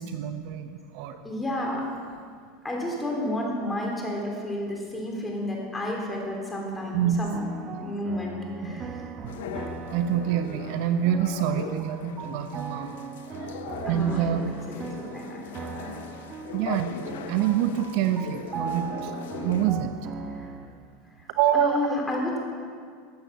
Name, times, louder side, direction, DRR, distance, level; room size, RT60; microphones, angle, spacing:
voice 1, 0.0-1.2 6.9-7.2 8.6-8.9 9.2-9.3 9.9-13.0 13.4-13.5 13.8-14.6 16.5-19.9 21.3-21.8, right 10 dB, 65° right, 8 dB, 0.8 m, -26 dB
voice 2, 1.2-1.8 2.6-7.4 7.8-9.0 13.1-13.2 13.8-14.3 14.7-14.9 15.1-15.9 20.3-20.5 21.2-21.3 21.5-22.4, left 1 dB, 10° left, -1 dB, 3.2 m, -31 dB
sound 1, 7.3-20.7, right 6 dB, 35° right, 1.0 m, -39 dB
sound 2, 9.3-19.7, left 7 dB, 85° left, 0.6 m, -40 dB
14.0 x 8.0 x 7.0 m, 2.1 s
supercardioid pair, 120°, 0 cm